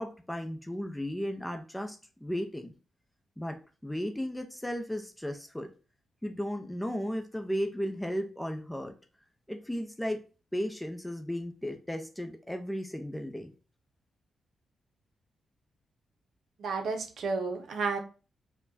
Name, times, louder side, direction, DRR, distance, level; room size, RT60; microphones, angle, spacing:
voice 1, 0.0-2.7 3.4-5.7 6.2-8.9 9.5-10.2 10.5-13.5, equal, 10° left, 5 dB, 0.6 m, -35 dB
voice 2, 16.6-18.0, right 4 dB, 70° right, 5 dB, 0.6 m, -31 dB
5.0 x 2.2 x 2.6 m, 0.34 s
cardioid pair, 60°, 0 cm